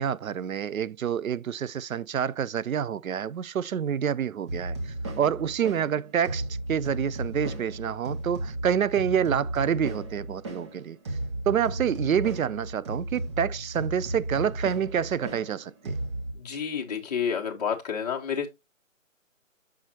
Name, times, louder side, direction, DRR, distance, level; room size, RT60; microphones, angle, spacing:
voice 1, 0.0-11.0 11.5-15.9, right 8 dB, 85° right, 0.5 m, -28 dB
sound 1, 4.5-16.3, right 1 dB, 20° right, 0.8 m, -35 dB
voice 2, 16.3-18.5, left 7 dB, 30° left, 1.2 m, -30 dB
6.3 x 5.7 x 2.8 m
figure-of-eight pair, 150°, 40 cm